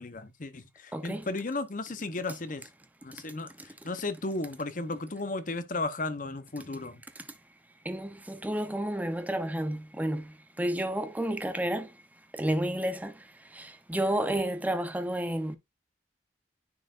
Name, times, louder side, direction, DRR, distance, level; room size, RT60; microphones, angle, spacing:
voice 1, 0.0-2.7 3.0-7.0, left 2 dB, 45° left, 0.9 m, -35 dB
voice 2, 0.9-1.3 7.8-11.9 12.3-13.2 13.5-15.6, right 1 dB, 10° right, 0.7 m, -31 dB
9.7 x 4.5 x 2.5 m
head